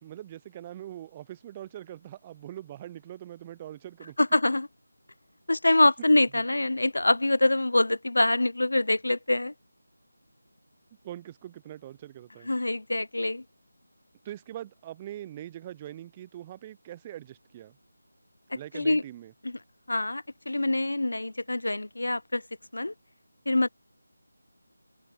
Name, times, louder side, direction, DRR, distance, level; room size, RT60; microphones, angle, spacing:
voice 1, 0.0-4.3 6.3-6.4 11.0-12.5 14.2-17.8 18.5-19.3, right 12 dB, 20° right, 0.8 m, -42 dB
voice 2, 4.2-4.7 5.5-9.5 12.5-13.4 18.7-19.0 19.9-22.4 22.7-22.9 23.5-23.7, left 2 dB, 70° left, 0.6 m, -25 dB
open air
figure-of-eight pair, 165°, 0 cm